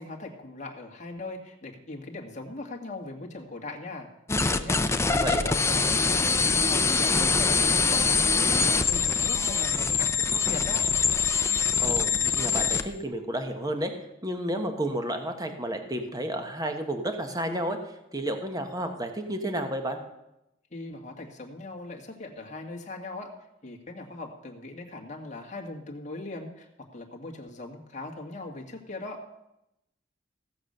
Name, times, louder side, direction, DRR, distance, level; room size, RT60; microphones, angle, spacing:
voice 1, 0.0-4.1 4.4-4.8 5.1-10.8 20.7-23.3 23.6-29.2, left 2 dB, 40° left, 0 dB, 1.9 m, -39 dB
sound 1, 4.3-12.9, left 5 dB, 15° left, 0.6 m, -24 dB
voice 2, 5.1-5.4 11.8-13.9 14.2-17.8 18.1-20.0, right 1 dB, 20° right, 5 dB, 1.2 m, -31 dB
16.0 x 7.2 x 6.6 m, 0.87 s
head